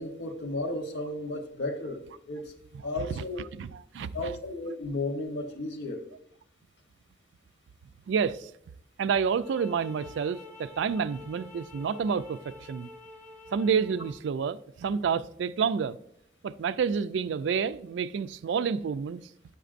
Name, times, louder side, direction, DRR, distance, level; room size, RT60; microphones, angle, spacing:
voice 1, 0.0-2.5 2.8-3.4 4.1-6.0, left 2 dB, 75° left, 0.9 m, -34 dB
voice 2, 3.5-4.3 8.1-8.5 9.0-12.9 13.5-16.0 16.4-19.3, right 6 dB, 80° right, 0.3 m, -29 dB
sound 1, 9.3-14.2, left 3 dB, 5° left, 0.9 m, -48 dB
7.9 x 5.9 x 2.5 m
head